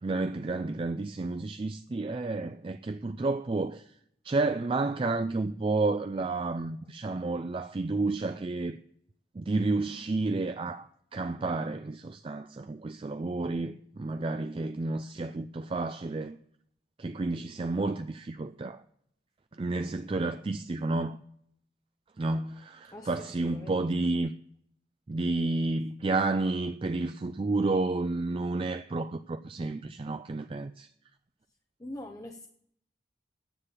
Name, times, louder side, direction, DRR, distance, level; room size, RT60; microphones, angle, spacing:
voice 1, 0.0-3.8 4.2-8.8 9.3-16.4 17.0-18.8 19.5-21.2 22.2-24.3 25.1-30.9, right 3 dB, 30° right, 0.4 m, -31 dB
voice 2, 22.9-23.8 31.8-32.5, left 1 dB, 20° left, 0.6 m, -43 dB
9.8 x 7.4 x 8.4 m
head